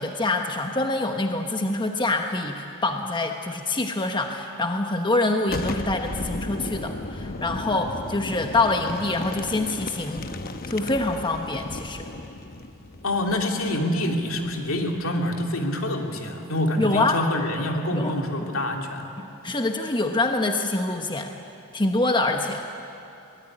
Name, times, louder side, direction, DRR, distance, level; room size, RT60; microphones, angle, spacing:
voice 1, 0.0-10.3 10.7-12.0 16.8-17.2 17.9-18.1 18.4-18.5 19.2-21.3 21.7-22.6, left 2 dB, 20° left, 4 dB, 1.1 m, -25 dB
Boom, 5.4-15.0, left 2 dB, 45° left, 1.0 m, -35 dB
voice 2, 13.0-19.0, left 1 dB, 70° left, 2 dB, 2.7 m, -26 dB
23.5 x 18.5 x 9.9 m, 2.8 s
head